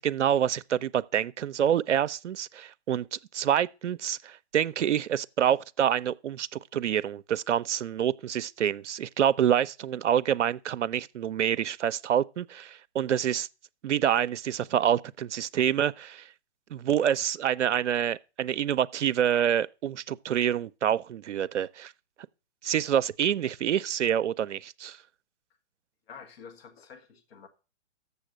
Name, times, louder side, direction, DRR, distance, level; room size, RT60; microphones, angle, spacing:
voice 1, 0.0-13.5 13.8-16.3 16.7-21.9 22.6-25.0, right 9 dB, 85° right, 0.5 m, -27 dB
voice 2, 26.1-27.5, left 6 dB, 60° left, 1.6 m, -48 dB
7.1 x 6.9 x 6.2 m
hypercardioid pair, 130°, 35 cm